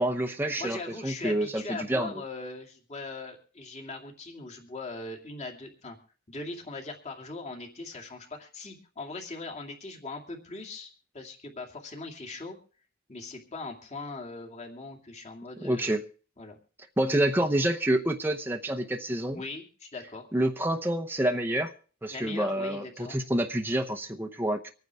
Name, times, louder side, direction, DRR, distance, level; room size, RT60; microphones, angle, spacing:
voice 1, 0.0-2.1 15.6-16.0 17.0-19.4 20.3-21.7 22.0-24.7, right 1 dB, 10° right, 0.8 m, -28 dB
voice 2, 0.6-6.0 6.3-12.6 13.1-16.0 16.4-16.6 19.3-20.3 22.1-23.2, left 3 dB, 35° left, 2.5 m, -40 dB
25.0 x 9.4 x 3.5 m
head